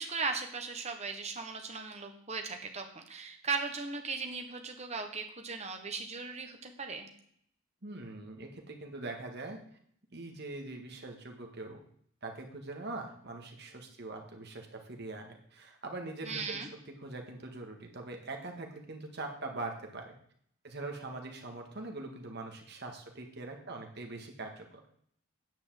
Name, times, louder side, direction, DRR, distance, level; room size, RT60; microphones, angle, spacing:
voice 1, 0.0-7.1 16.2-16.7, right 4 dB, 30° right, 4 dB, 1.3 m, -37 dB
voice 2, 7.8-9.6 10.1-11.8 12.2-16.6 16.9-20.1 20.6-24.8, right 2 dB, 50° right, 2 dB, 1.8 m, -42 dB
9.6 x 5.4 x 7.7 m, 0.64 s
head